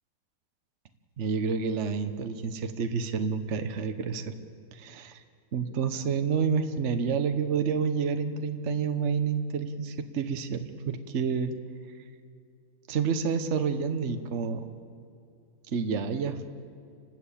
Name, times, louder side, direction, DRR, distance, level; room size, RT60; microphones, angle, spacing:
voice 1, 1.2-4.3 4.7-5.2 5.5-11.5 12.9-14.6 15.7-16.5, right 6 dB, 50° right, 7 dB, 1.2 m, -29 dB
29.5 x 13.0 x 8.5 m, 2.4 s
omnidirectional pair, 1.8 m